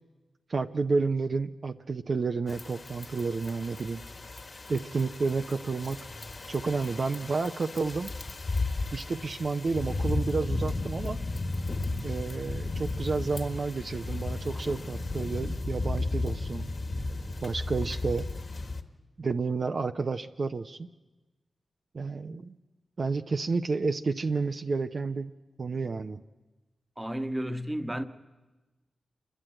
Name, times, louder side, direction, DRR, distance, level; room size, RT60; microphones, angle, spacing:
voice 1, 0.5-4.0 4.7-6.0 6.5-8.1 8.9-11.2 12.0-16.7 17.4-18.3 19.2-20.9 21.9-22.5 23.0-25.3 25.6-26.2, right 4 dB, 55° right, 0.6 m, -30 dB
sound 1, 2.5-18.8, left 2 dB, 50° left, 1.5 m, -34 dB
voice 2, 27.0-28.0, equal, 15° right, 1.1 m, -32 dB
28.0 x 11.5 x 8.9 m
cardioid pair, 65°, 0 cm